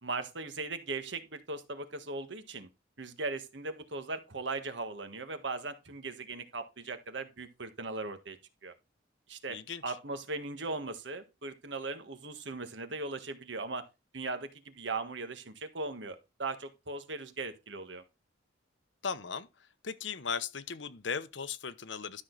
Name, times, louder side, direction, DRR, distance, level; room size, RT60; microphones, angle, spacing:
voice 1, 0.0-2.7 3.0-8.4 8.6-8.7 9.3-13.9 14.1-18.0, right 3 dB, 70° right, 1.5 m, -38 dB
voice 2, 9.5-10.0 19.0-19.5 19.8-22.2, left 6 dB, 70° left, 0.9 m, -37 dB
12.5 x 6.3 x 3.9 m
head